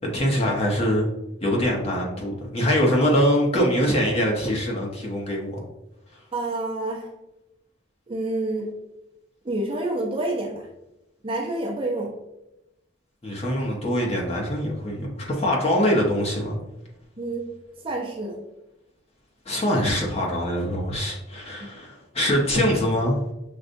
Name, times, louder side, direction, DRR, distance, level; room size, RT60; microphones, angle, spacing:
voice 1, 0.1-1.1 1.4-5.6 13.2-16.6 19.5-23.2, equal, 35° left, -2 dB, 0.9 m, -23 dB
voice 2, 6.3-7.1 8.1-8.7 9.4-10.7 11.2-12.1 17.2-17.5 17.8-18.4, right 2 dB, 30° right, -1 dB, 0.7 m, -28 dB
6.6 x 2.4 x 2.6 m, 0.91 s
head